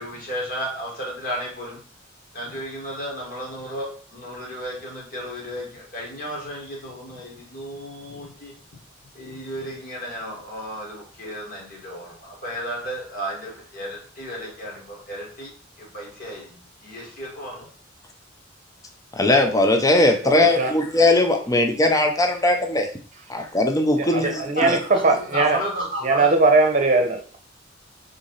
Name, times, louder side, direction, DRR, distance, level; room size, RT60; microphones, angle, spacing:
voice 1, 0.0-1.8 2.3-8.5 9.2-15.5 15.8-17.7 24.6-26.3, equal, 45° left, -3 dB, 2.1 m, -33 dB
voice 2, 19.2-22.9 23.3-24.8, left 2 dB, 20° left, 4 dB, 0.7 m, -19 dB
voice 3, 20.2-20.7 24.0-25.6 26.0-27.4, right 3 dB, 40° right, 5 dB, 0.9 m, -20 dB
3.8 x 3.4 x 4.0 m, 0.40 s
head